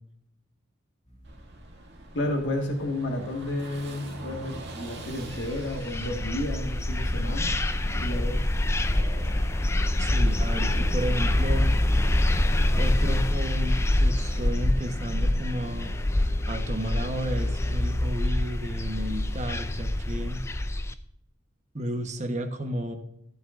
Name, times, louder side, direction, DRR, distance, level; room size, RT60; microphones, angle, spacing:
sound 1, 1.1-17.8, left 1 dB, 30° left, 3.7 m, -47 dB
Car passing by / Engine, 1.2-9.1, right 2 dB, 55° right, 2.1 m, -44 dB
voice 1, 2.1-8.4, left 1 dB, 60° left, 2 dB, 1.7 m, -32 dB
sound 2, 5.2-20.9, left 1 dB, 15° left, 0.4 m, -25 dB
voice 2, 10.0-11.8 12.7-15.9 16.5-20.4 21.7-23.0, right 1 dB, 35° right, 5 dB, 1.1 m, -32 dB
15.0 x 7.8 x 2.5 m, 0.81 s
head